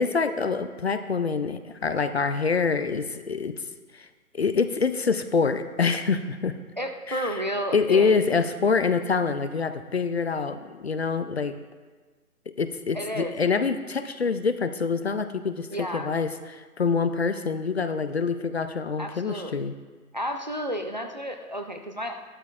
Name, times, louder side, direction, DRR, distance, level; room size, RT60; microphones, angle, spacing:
voice 1, 0.0-3.5 3.9-4.1 4.3-6.5 7.1-7.4 7.7-11.6 12.5-19.7, left 5 dB, 45° left, 10 dB, 0.5 m, -26 dB
voice 2, 6.8-8.2 12.9-13.3 15.7-16.1 19.0-19.6 20.1-22.1, equal, 30° right, 4 dB, 0.4 m, -31 dB
13.5 x 12.0 x 2.4 m, 1.4 s
figure-of-eight pair, 140°, 45 cm